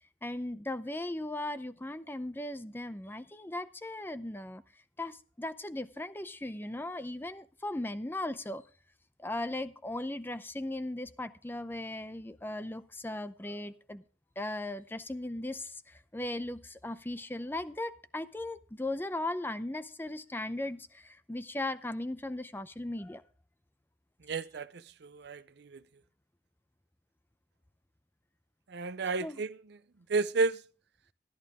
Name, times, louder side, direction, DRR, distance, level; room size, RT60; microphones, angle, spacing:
voice 1, 0.2-4.6 5.0-8.6 9.2-14.0 14.4-23.2 29.2-29.4, left 1 dB, 10° left, 0.6 m, -37 dB
voice 2, 24.3-24.7 25.0-25.8 28.7-29.5 30.1-30.6, right 3 dB, 60° right, 0.6 m, -31 dB
13.0 x 11.0 x 3.6 m
head